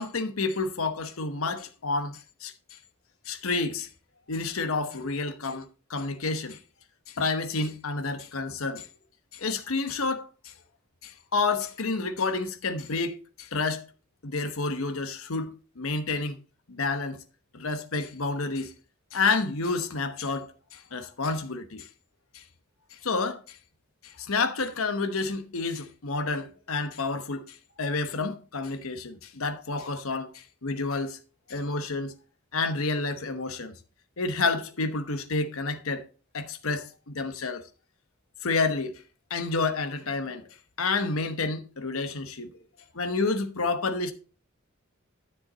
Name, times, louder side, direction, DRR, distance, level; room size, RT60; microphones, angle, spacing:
voice 1, 0.0-2.5 3.3-3.9 4.3-6.6 7.1-8.9 9.3-10.5 11.0-13.8 14.2-16.4 16.7-17.2 17.5-18.7 19.1-21.9 22.3-22.4 22.9-23.6 24.0-31.2 31.5-32.1 32.5-33.7 34.2-36.0 36.3-37.6 38.4-39.0 39.3-40.4 40.8-42.5 42.9-44.1, left 3 dB, 70° left, 1.0 m, -29 dB
10.0 x 7.2 x 4.0 m
head